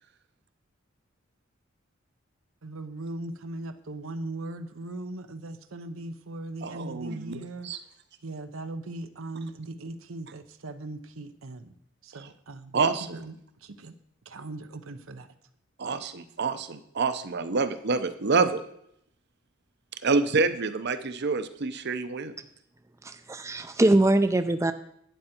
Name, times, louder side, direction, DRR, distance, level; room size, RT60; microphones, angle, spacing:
voice 1, 2.6-7.7 8.2-11.8 12.0-12.7 13.1-13.4 13.6-13.9 14.2-15.3, right 2 dB, 90° right, 9 dB, 0.8 m, -39 dB
voice 2, 6.6-7.4 7.6-7.8 12.7-13.2 15.8-18.6 20.0-22.3, right 4 dB, 55° right, 11 dB, 0.8 m, -27 dB
voice 3, 23.0-24.7, right 1 dB, 15° right, 9 dB, 0.4 m, -22 dB
11.5 x 9.0 x 4.4 m, 0.72 s
head